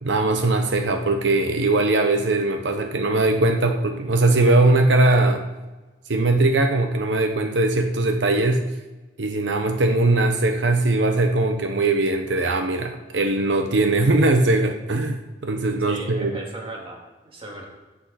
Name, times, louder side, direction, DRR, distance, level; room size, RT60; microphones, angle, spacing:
voice 1, 0.0-5.5 6.1-8.6 9.2-16.4, right 2 dB, 80° right, 5 dB, 0.9 m, -20 dB
voice 2, 15.8-17.7, right 2 dB, 30° right, -1 dB, 2.3 m, -37 dB
15.5 x 8.6 x 4.2 m, 1.2 s
head